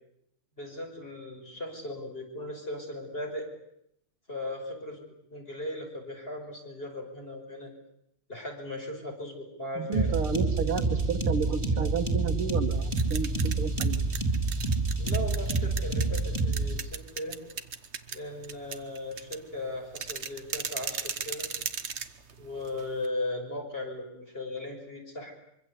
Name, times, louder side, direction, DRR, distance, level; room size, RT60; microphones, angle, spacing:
voice 1, 0.6-3.5 4.3-5.0 5.3-7.7 8.3-10.1 15.0-17.4 18.1-21.5 22.4-25.3, left 1 dB, 25° left, 1 dB, 6.0 m, -37 dB
voice 2, 9.8-14.0, right 6 dB, 75° right, 6 dB, 2.4 m, -31 dB
sound 1, 9.9-16.8, right 3 dB, 10° right, 3.9 m, -28 dB
sound 2, 12.7-23.1, right 6 dB, 40° right, 1.1 m, -38 dB
25.0 x 24.5 x 8.3 m, 0.78 s
omnidirectional pair, 2.4 m